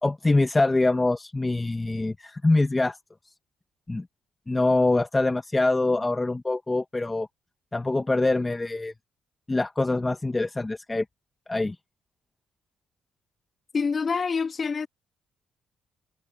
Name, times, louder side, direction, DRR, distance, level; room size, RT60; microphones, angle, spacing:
voice 1, 0.0-3.0 3.9-4.1 4.5-7.3 7.7-8.9 9.5-11.0 11.5-11.8, left 2 dB, 20° left, 1.0 m, -24 dB
voice 2, 13.7-14.9, left 5 dB, 40° left, 2.5 m, -26 dB
cardioid pair, 90°, 0 cm